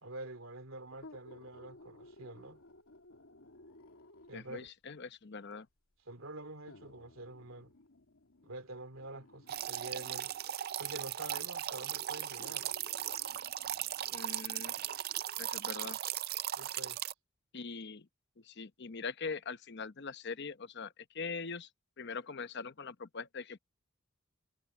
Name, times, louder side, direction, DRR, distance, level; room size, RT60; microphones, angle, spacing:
voice 1, 0.0-2.6 4.3-4.7 6.0-7.7 8.4-10.3 10.8-12.7 16.6-17.0, right 2 dB, 75° right, 2.9 m, -47 dB
sound 1, 0.9-4.6 5.5-5.6 6.7-10.6 11.6-11.7 12.4-15.0 15.5-15.6, left 2 dB, 85° left, 2.6 m, -58 dB
voice 2, 4.3-5.7 14.1-14.7 15.4-16.0 17.5-18.1 18.4-21.7 22.0-23.6, left 4 dB, 55° left, 0.9 m, -42 dB
sound 2, 9.5-17.1, right 12 dB, 50° right, 0.4 m, -38 dB
head